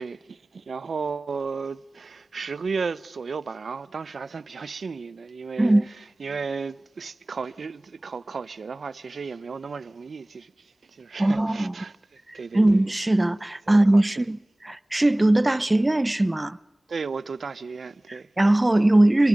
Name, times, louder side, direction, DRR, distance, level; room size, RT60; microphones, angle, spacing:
voice 1, 0.0-5.7 6.2-12.0 12.3-12.8 13.7-14.3 16.9-18.3 18.7-18.9, right 5 dB, 75° right, 0.7 m, -34 dB
voice 2, 11.2-11.7 12.3-16.6 18.1-19.3, right 1 dB, 20° right, 0.8 m, -20 dB
28.5 x 24.5 x 5.3 m
wide cardioid pair, 85°, 0 cm